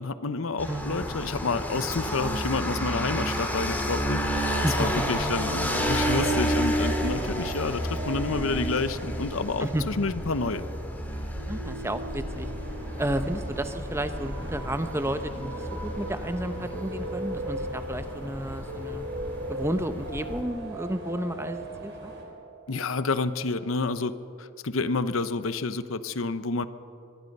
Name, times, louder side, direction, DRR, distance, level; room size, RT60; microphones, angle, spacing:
voice 1, 0.0-4.2 4.6-10.7 22.7-24.1 24.4-26.7, left 3 dB, 75° left, 12 dB, 0.8 m, -29 dB
sound 1, 0.6-20.4, equal, 10° left, 2.6 m, -31 dB
voice 2, 0.7-1.0 4.6-4.9 9.6-9.8 11.5-12.5 13.0-19.1 19.5-22.1, right 1 dB, 15° right, 9 dB, 0.9 m, -32 dB
sound 2, 4.3-22.9, equal, 70° right, 4.9 m, -40 dB
sound 3, 12.3-22.2, right 1 dB, 55° right, 4.8 m, -45 dB
24.0 x 22.5 x 5.4 m, 2.7 s
head